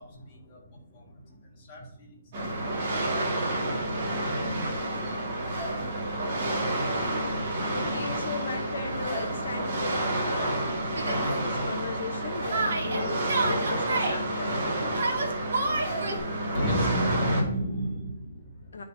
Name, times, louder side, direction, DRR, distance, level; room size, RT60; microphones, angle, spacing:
voice 1, 0.0-5.4 16.5-18.7, equal, 25° left, -3 dB, 1.6 m, -35 dB
sound 1, 2.3-17.4, right 1 dB, 30° right, 1.8 m, -30 dB
voice 2, 7.5-15.2 16.6-17.0 18.7-18.8, left 4 dB, 75° left, 4 dB, 0.8 m, -37 dB
Yell, 10.9-11.2 12.5-14.2 14.9-16.2, right 3 dB, 65° right, 1.4 m, -29 dB
10.5 x 3.7 x 2.7 m, 0.73 s
hypercardioid pair, 175°, 0 cm